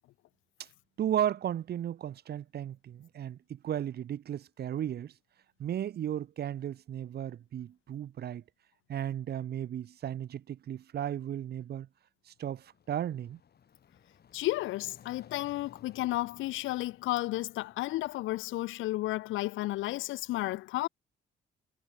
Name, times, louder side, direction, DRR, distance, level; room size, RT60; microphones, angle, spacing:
voice 1, 1.0-5.1 5.6-8.4 8.9-11.9 12.4-13.4, right 10 dB, 55° right, 0.7 m, -35 dB
sound 1, 12.4-18.4, left 8 dB, 55° left, 5.6 m, -59 dB
voice 2, 14.3-20.9, left 17 dB, 80° left, 0.4 m, -32 dB
cardioid pair, 90°, 20 cm